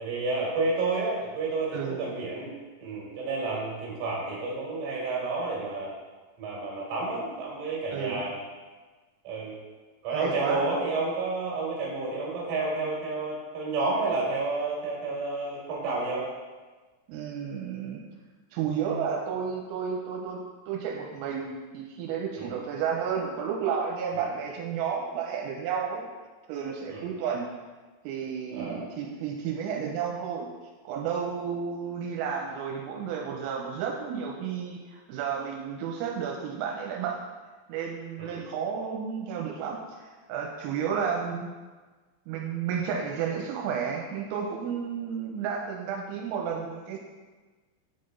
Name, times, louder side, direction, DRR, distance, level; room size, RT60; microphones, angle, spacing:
voice 1, 0.0-2.5 2.8-5.9 6.4-8.3 9.2-9.5 10.0-16.2 22.3-22.6 24.1-24.3 26.9-27.1 28.5-28.9 38.2-38.4, right 3 dB, 55° right, -5 dB, 3.1 m, -30 dB
voice 2, 7.9-8.2 10.1-10.7 17.1-18.0 18.5-26.0 26.5-27.5 28.0-30.5 30.8-37.2 37.7-41.5 42.3-47.0, right 7 dB, 85° right, -1 dB, 3.2 m, -32 dB
9.9 x 3.8 x 3.8 m, 1.3 s
omnidirectional pair, 6.0 m